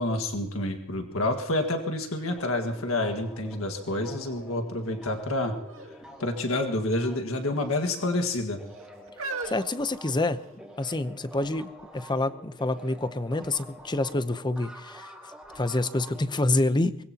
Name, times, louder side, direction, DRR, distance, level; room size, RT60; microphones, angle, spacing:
voice 1, 0.0-5.5 6.2-8.6, left 1 dB, 90° left, 5 dB, 1.7 m, -28 dB
sound 1, 1.6-1.7 2.1-3.7 4.3-4.8 5.6-6.0 6.2-6.4 7.3-7.9 8.6-10.7 11.4-11.5, right 3 dB, 70° right, 2.2 m, -41 dB
sound 2, 2.3-8.2 8.5-16.5, equal, ahead, 3.8 m, -48 dB
voice 2, 9.4-10.4 10.8-15.1 15.5-17.0, left 2 dB, 20° left, 12 dB, 0.8 m, -27 dB
24.0 x 20.5 x 2.9 m, 0.77 s
head